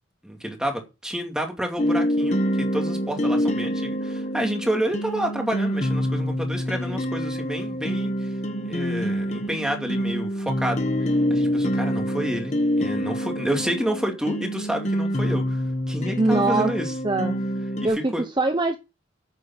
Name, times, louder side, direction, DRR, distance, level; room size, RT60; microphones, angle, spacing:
voice 1, 0.2-8.3 8.6-10.9 11.3-16.9 18.1-18.2, right 1 dB, 5° right, 2.5 m, -29 dB
sound 1, 1.8-17.9, equal, 35° left, 1.3 m, -26 dB
voice 2, 16.2-16.7 17.0-17.4 17.8-18.8, right 2 dB, 25° right, 0.8 m, -22 dB
9.1 x 7.6 x 5.9 m
head